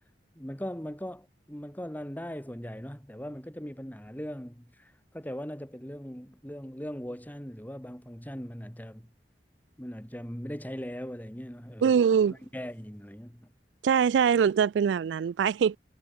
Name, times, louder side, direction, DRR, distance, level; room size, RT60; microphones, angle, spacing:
voice 1, 0.4-9.1 9.8-12.0 12.3-13.5, equal, 10° left, 4.6 m, -40 dB
voice 2, 11.8-12.3 13.8-15.8, right 7 dB, 80° right, 0.3 m, -23 dB
head